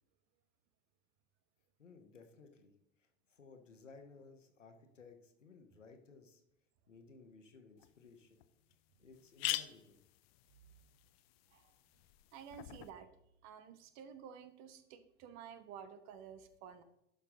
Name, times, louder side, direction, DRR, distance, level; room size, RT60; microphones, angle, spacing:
voice 1, 1.8-6.4 6.9-8.5 9.0-10.0, left 4 dB, 85° left, 6 dB, 1.2 m, -59 dB
sound 1, 7.8-7.9 8.4-8.5 8.7-8.8 9.1-12.9, left 16 dB, 55° left, 0.6 m, -44 dB
voice 2, 12.3-13.1 13.4-16.8, right 8 dB, 50° right, 11 dB, 1.0 m, -52 dB
11.5 x 5.5 x 3.8 m, 0.84 s
figure-of-eight pair, 70°, 36 cm